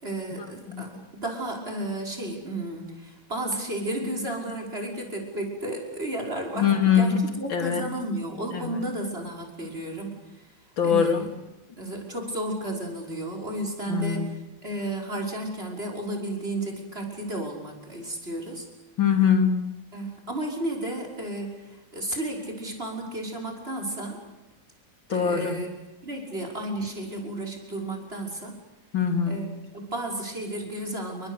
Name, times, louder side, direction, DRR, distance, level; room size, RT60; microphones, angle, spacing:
voice 1, 0.0-0.9 1.2-10.4 10.8-11.3 11.8-14.3 14.6-18.7 19.9-24.2 25.1-25.7 26.0-28.6 29.3-29.5 29.7-31.3, right 1 dB, 30° right, 1 dB, 6.2 m, -33 dB
voice 2, 6.6-7.2 7.5-7.9 8.5-8.8 10.8-11.2 13.9-14.3 19.0-19.7 25.1-25.6 28.9-29.4, left 7 dB, 90° left, 6 dB, 3.7 m, -23 dB
29.0 x 24.5 x 8.4 m, 0.96 s
omnidirectional pair, 2.1 m